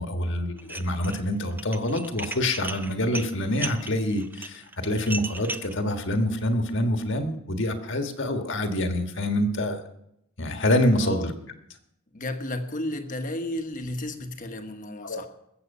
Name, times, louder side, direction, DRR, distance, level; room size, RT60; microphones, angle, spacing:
voice 1, 0.0-9.8 10.4-11.3 15.0-15.3, left 1 dB, 55° left, 5 dB, 1.5 m, -26 dB
Dishes pots and pans, 0.6-1.2 1.5-5.7, right 2 dB, 10° right, 0.4 m, -36 dB
voice 2, 11.0-11.3 12.1-15.3, left 1 dB, 40° left, 6 dB, 1.2 m, -33 dB
21.0 x 7.9 x 5.5 m, 0.80 s
head